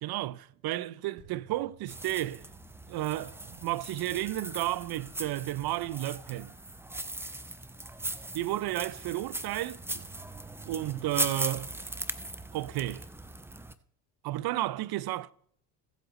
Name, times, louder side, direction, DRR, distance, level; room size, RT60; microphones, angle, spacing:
voice 1, 0.0-2.5 2.9-6.5 8.3-10.0 10.7-11.7 12.5-13.1 14.2-15.3, right 15 dB, 50° right, 0.6 m, -32 dB
sound 1, 1.2-10.0 10.4-10.5, right 7 dB, 85° right, 3.9 m, -63 dB
sound 2, 1.9-13.7, right 2 dB, 5° right, 0.6 m, -39 dB
15.5 x 8.0 x 3.1 m
hypercardioid pair, 65°, 48 cm